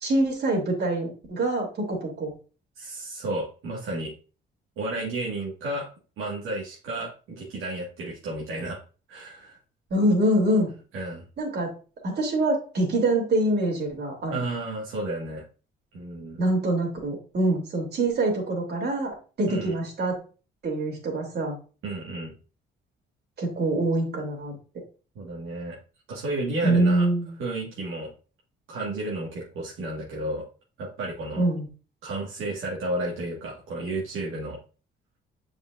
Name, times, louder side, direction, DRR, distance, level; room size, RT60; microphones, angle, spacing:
voice 1, 0.0-2.3 9.9-10.7 11.4-11.7 12.0-14.4 16.4-20.2 20.6-21.6 23.4-24.6 26.6-27.3 31.4-31.7, right 1 dB, 55° right, 0 dB, 2.9 m, -25 dB
voice 2, 2.8-4.1 4.8-5.9 6.2-8.8 9.1-9.6 10.9-11.2 14.3-15.4 15.9-16.4 19.5-19.7 21.8-22.3 25.1-25.8 26.1-27.1 27.4-28.1 28.7-30.4 30.8-31.4 32.0-34.6, right 2 dB, 85° right, -4 dB, 1.8 m, -32 dB
7.4 x 5.0 x 2.5 m, 0.36 s
cardioid pair, 90°, 20 cm